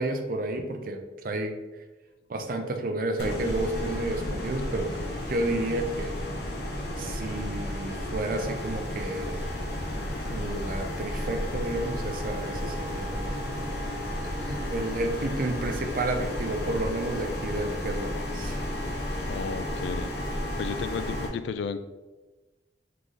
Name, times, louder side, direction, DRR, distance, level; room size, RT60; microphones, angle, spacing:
voice 1, 0.0-1.5 2.3-4.9 5.3-6.2 7.0-9.5 10.3-13.5 14.2-18.6, right 2 dB, 50° right, 5 dB, 0.5 m, -31 dB
sound 1, 3.2-21.3, left 1 dB, 60° left, 0.8 m, -33 dB
voice 2, 19.3-21.8, left 5 dB, 80° left, 12 dB, 0.3 m, -34 dB
3.8 x 3.8 x 3.2 m, 1.2 s
head